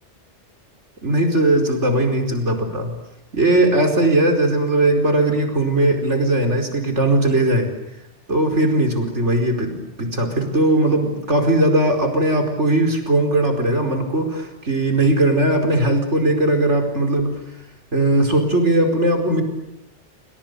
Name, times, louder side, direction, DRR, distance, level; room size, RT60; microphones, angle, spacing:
voice 1, 1.0-2.9 3.3-7.7 8.3-17.4 17.9-19.4, right 1 dB, 90° right, 5 dB, 5.2 m, -19 dB
29.5 x 25.5 x 6.9 m, 0.88 s
omnidirectional pair, 1.2 m